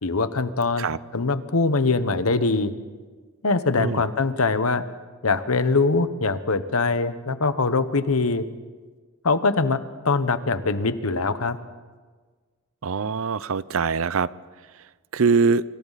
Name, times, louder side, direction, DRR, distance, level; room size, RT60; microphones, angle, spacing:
voice 1, 0.0-2.7 3.4-4.8 5.2-8.4 9.2-9.8 10.0-11.6, left 3 dB, 85° left, 12 dB, 1.1 m, -22 dB
voice 2, 12.8-14.3 15.1-15.6, right 5 dB, 70° right, 18 dB, 0.6 m, -22 dB
26.5 x 25.5 x 4.1 m, 1.4 s
head